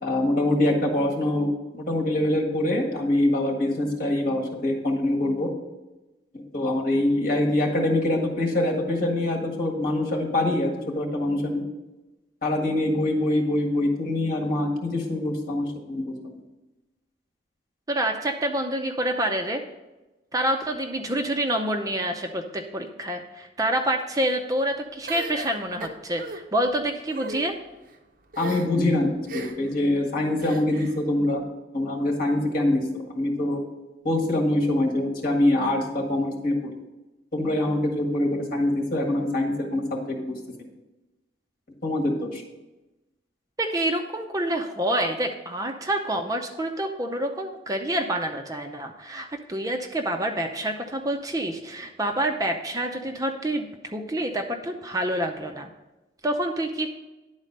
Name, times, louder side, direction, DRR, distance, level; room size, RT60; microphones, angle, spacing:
voice 1, 0.0-5.5 6.3-11.7 12.4-16.3 28.4-31.4 31.7-33.6 34.0-36.8 37.3-40.3 41.8-42.4, left 1 dB, 50° left, 0 dB, 1.7 m, -24 dB
voice 2, 17.9-19.6 20.3-27.5 43.6-55.7 56.2-56.9, right 1 dB, 20° right, 4 dB, 0.6 m, -27 dB
sound 1, 25.1-26.4 27.1-27.4 28.3-28.8 29.3-29.7 30.4-31.0, right 2 dB, 50° right, 0.8 m, -36 dB
10.5 x 4.2 x 6.5 m, 1.0 s
head